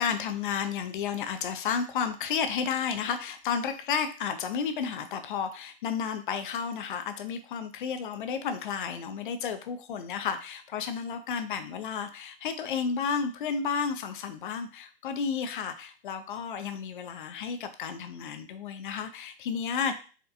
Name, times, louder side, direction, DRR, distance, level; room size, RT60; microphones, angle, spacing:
voice 1, 0.0-19.9, left 6 dB, 50° left, 8 dB, 0.5 m, -32 dB
4.2 x 2.2 x 2.5 m, 0.37 s
hypercardioid pair, 125°, 32 cm